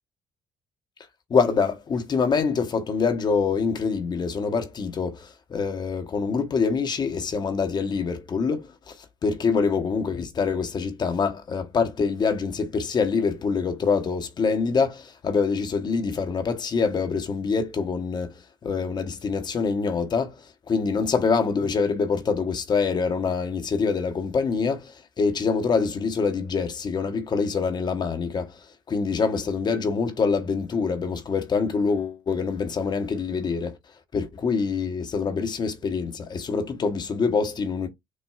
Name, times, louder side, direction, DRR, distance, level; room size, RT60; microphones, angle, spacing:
voice 1, 1.3-8.9 9.2-18.3 18.6-28.6 28.9-33.8 34.1-37.9, left 5 dB, 40° left, 0.9 m, -25 dB
6.2 x 2.3 x 2.3 m
hypercardioid pair, 50°, 11 cm